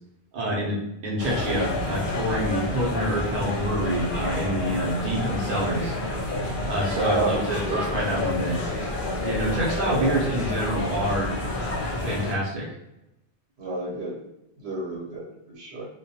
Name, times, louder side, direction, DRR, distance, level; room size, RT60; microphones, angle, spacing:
voice 1, 0.3-6.0 6.6-8.6 9.2-11.4 12.0-12.7, right 1 dB, 60° right, -4 dB, 0.8 m, -27 dB
sound 1, 1.2-12.4, left 2 dB, 60° left, 0.7 m, -29 dB
voice 2, 6.9-7.9 9.9-10.2 13.6-14.1 14.6-15.9, right 2 dB, 80° right, -5 dB, 1.0 m, -29 dB
2.2 x 2.1 x 2.7 m, 0.91 s
omnidirectional pair, 1.0 m